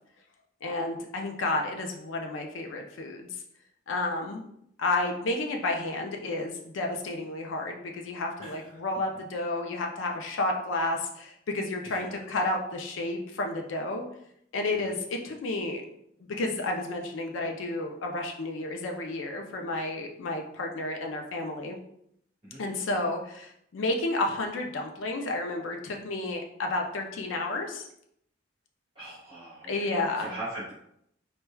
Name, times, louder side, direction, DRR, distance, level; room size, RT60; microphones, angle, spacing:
voice 1, 0.6-3.3 3.9-4.5 4.8-14.1 14.5-15.8 16.4-21.8 22.6-27.8 29.7-30.3, left 2 dB, 90° left, 2 dB, 0.4 m, -31 dB
voice 2, 8.4-8.8 11.8-12.2 14.7-14.9 22.4-22.6 28.9-30.7, right 1 dB, 30° right, -9 dB, 1.4 m, -41 dB
4.4 x 2.2 x 2.2 m, 0.73 s
head